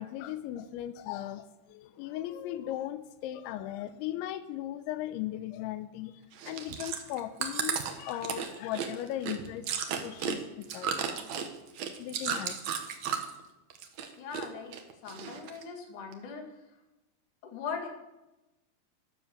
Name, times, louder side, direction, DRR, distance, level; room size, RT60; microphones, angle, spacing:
voice 1, 0.0-10.9 12.0-12.7, left 12 dB, 90° left, 12 dB, 3.1 m, -38 dB
Chewing mastication, 6.3-13.4 13.7-14.5 14.7-15.6 16.1-16.2, right 7 dB, 85° right, 1.5 m, -34 dB
voice 2, 14.2-14.7 15.0-16.4 17.4-17.9, left 6 dB, 50° left, 3 dB, 3.2 m, -39 dB
12.5 x 12.5 x 7.1 m, 0.97 s
omnidirectional pair, 5.2 m